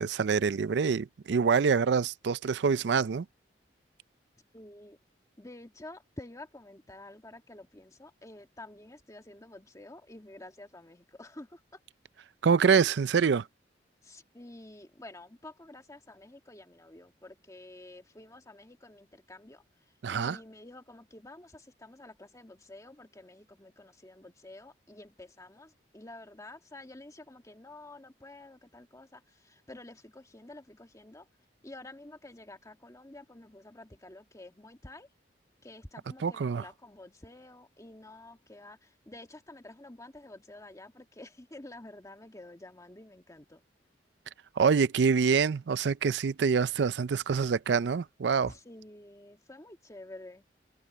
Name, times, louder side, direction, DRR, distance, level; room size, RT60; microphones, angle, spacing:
voice 1, 0.0-3.3 12.4-13.5 20.0-20.4 36.2-36.7 44.6-48.5, right 6 dB, 75° right, 0.4 m, -26 dB
voice 2, 4.5-5.0 5.4-11.5 14.0-19.6 20.1-29.2 29.7-31.2 31.6-35.1 35.6-38.8 39.1-43.6 48.5-50.4, left 2 dB, 20° left, 1.6 m, -49 dB
open air
head